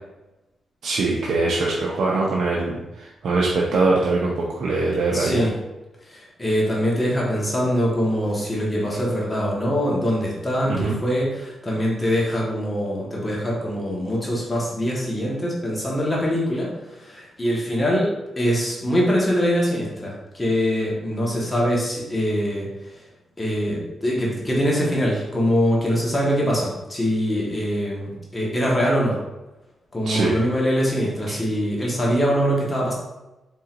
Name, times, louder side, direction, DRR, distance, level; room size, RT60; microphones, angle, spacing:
voice 1, 0.8-5.5 10.7-10.9 30.0-30.3 31.3-31.4, right 3 dB, 70° right, -3 dB, 0.6 m, -22 dB
voice 2, 5.1-5.5 6.1-16.7 17.0-22.7 23.4-29.2 29.9-32.9, equal, 25° left, -4 dB, 1.3 m, -23 dB
4.3 x 3.8 x 2.5 m, 1.0 s
cardioid pair, 75°, 0 cm